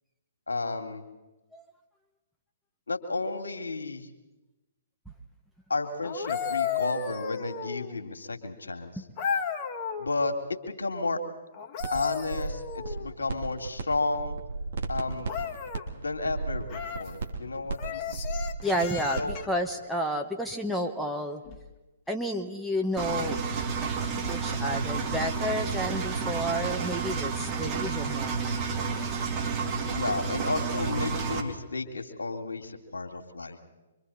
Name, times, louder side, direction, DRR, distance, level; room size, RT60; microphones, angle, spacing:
voice 1, 0.5-1.0 2.9-4.1 5.7-8.9 10.0-11.2 11.9-14.4 14.9-15.3 15.9-18.2 19.1-19.4 29.9-33.6, left 3 dB, 75° left, 3 dB, 2.6 m, -32 dB
sound 1, 6.0-8.0 9.2-10.1 11.5-13.2 15.2-15.9 16.7-17.1 17.8-19.6 21.4-21.6, left 7 dB, 30° left, 1.9 m, -34 dB
sound 2, 11.8-11.9 12.2-13.8 14.1-19.3, right 3 dB, 55° right, 3.2 m, -34 dB
voice 2, 18.6-21.4 22.1-23.5 24.2-28.5, equal, ahead, 1 dB, 1.5 m, -31 dB
Engine, 23.0-31.4, right 5 dB, 25° right, 2.8 m, -30 dB
25.5 x 24.5 x 4.3 m, 1.1 s
figure-of-eight pair, 120°, 0 cm